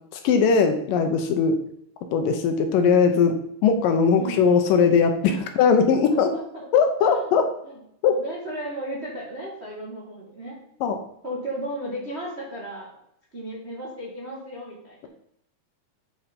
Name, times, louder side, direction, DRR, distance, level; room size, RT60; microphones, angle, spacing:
voice 1, 0.1-1.6 2.1-3.4 3.6-5.1 5.6-6.3 6.7-7.5 8.0-8.2 10.8-11.0, left 6 dB, 75° left, 6 dB, 2.2 m, -19 dB
voice 2, 6.1-6.7 7.0-7.3 7.6-7.8 8.1-10.6 11.2-12.9 13.3-15.1, right 1 dB, 40° right, -4 dB, 0.8 m, -35 dB
7.9 x 5.9 x 5.1 m, 0.74 s
omnidirectional pair, 4.3 m